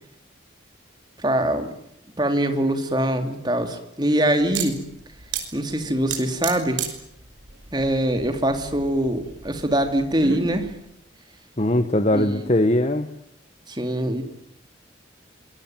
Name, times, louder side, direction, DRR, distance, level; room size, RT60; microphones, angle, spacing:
voice 1, 1.2-1.7 2.2-4.8 5.5-6.8 7.7-10.7 12.1-12.4 13.7-14.2, right 1 dB, 25° right, 6 dB, 3.1 m, -23 dB
sound 1, 4.4-10.8, right 7 dB, 85° right, 5.7 m, -35 dB
voice 2, 11.6-13.1, left 1 dB, 35° left, 9 dB, 1.2 m, -20 dB
26.5 x 21.5 x 9.2 m, 0.75 s
head